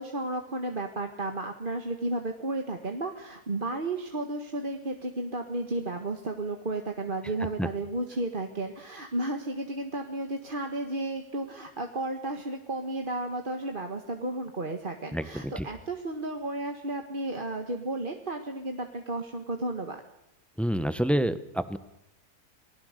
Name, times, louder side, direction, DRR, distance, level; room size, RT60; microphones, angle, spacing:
voice 1, 0.0-20.0, right 2 dB, 35° right, 4 dB, 1.7 m, -33 dB
voice 2, 15.1-15.7 20.6-21.8, equal, ahead, 12 dB, 1.0 m, -28 dB
28.5 x 20.0 x 6.7 m, 0.87 s
omnidirectional pair, 1.6 m